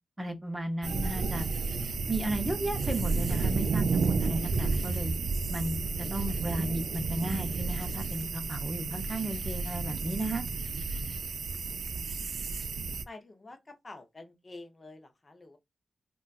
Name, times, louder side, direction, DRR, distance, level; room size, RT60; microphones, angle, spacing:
voice 1, 0.2-1.5 2.1-5.1 5.5-10.5, right 1 dB, 15° right, 0.6 m, -34 dB
sound 1, 0.8-13.0, right 4 dB, 70° right, 0.3 m, -31 dB
voice 2, 12.2-12.5 13.0-15.6, left 2 dB, 30° left, 0.6 m, -49 dB
3.8 x 2.3 x 2.2 m
wide cardioid pair, 165°, 0 cm